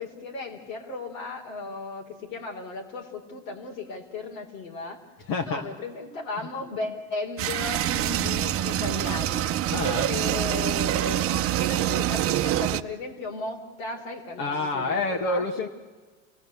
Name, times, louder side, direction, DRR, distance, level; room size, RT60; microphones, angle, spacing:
voice 1, 0.0-5.0 5.4-9.5 10.1-11.2 11.6-15.4, left 3 dB, 85° left, 0 dB, 4.7 m, -35 dB
voice 2, 5.3-5.6 9.7-10.1 14.4-15.7, left 3 dB, 60° left, 0 dB, 2.2 m, -27 dB
sound 1, 7.4-12.8, right 12 dB, 35° right, 0.9 m, -26 dB
29.5 x 17.5 x 8.4 m, 1.3 s
supercardioid pair, 120°, 40 cm